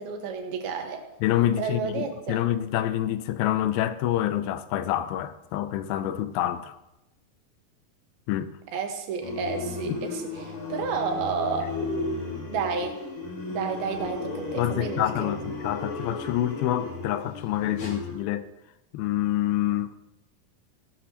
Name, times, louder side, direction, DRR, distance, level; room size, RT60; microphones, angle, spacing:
voice 1, 0.0-1.1 1.6-2.4 8.7-11.7 12.5-13.0 13.5-15.4, right 5 dB, 90° right, 3.2 m, -31 dB
voice 2, 1.2-6.8 8.3-8.5 9.9-10.0 14.6-18.5 18.9-19.9, left 12 dB, 90° left, 2.6 m, -27 dB
sound 1, 9.2-18.1, left 2 dB, 45° left, 3.8 m, -34 dB
18.5 x 12.0 x 2.9 m
omnidirectional pair, 4.2 m